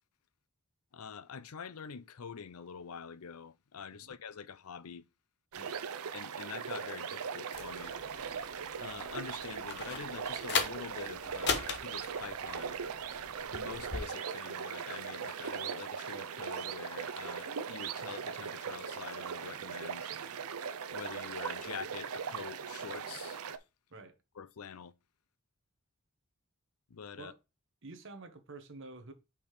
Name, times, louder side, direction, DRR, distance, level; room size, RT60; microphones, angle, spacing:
voice 1, 0.9-5.1 6.1-7.9 8.8-12.8 13.5-20.1 20.9-23.4 24.4-24.9 26.9-27.3, left 6 dB, 80° left, 0.5 m, -46 dB
sound 1, 5.5-23.6, right 6 dB, 80° right, 0.6 m, -39 dB
sound 2, 7.5-14.0, left 5 dB, 50° left, 1.1 m, -39 dB
voice 2, 27.8-29.1, right 3 dB, 55° right, 1.2 m, -49 dB
5.6 x 4.6 x 4.9 m
head